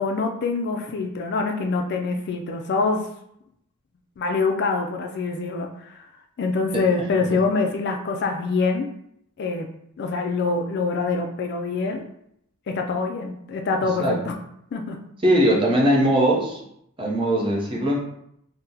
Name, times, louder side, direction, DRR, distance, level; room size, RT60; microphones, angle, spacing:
voice 1, 0.0-3.1 4.2-6.1 6.4-8.9 9.4-9.7 10.0-12.0 12.7-14.3 14.7-15.0, left 4 dB, 50° left, 3 dB, 0.3 m, -25 dB
voice 2, 15.2-16.6 17.0-18.0, right 1 dB, 20° right, -3 dB, 0.6 m, -20 dB
2.8 x 2.0 x 3.7 m, 0.74 s
head